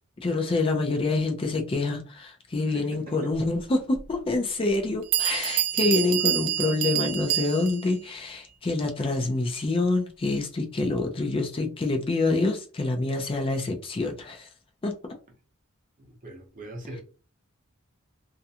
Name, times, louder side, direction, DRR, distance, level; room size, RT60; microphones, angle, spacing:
voice 1, 0.2-14.5 14.8-15.1, left 2 dB, 25° left, 0.4 m, -26 dB
voice 2, 2.7-3.3 16.0-17.0, right 1 dB, 40° right, 0.7 m, -41 dB
Bell, 3.9-4.0 4.7-4.8 5.1-7.9, right 13 dB, 90° right, 0.4 m, -27 dB
2.4 x 2.1 x 2.7 m
head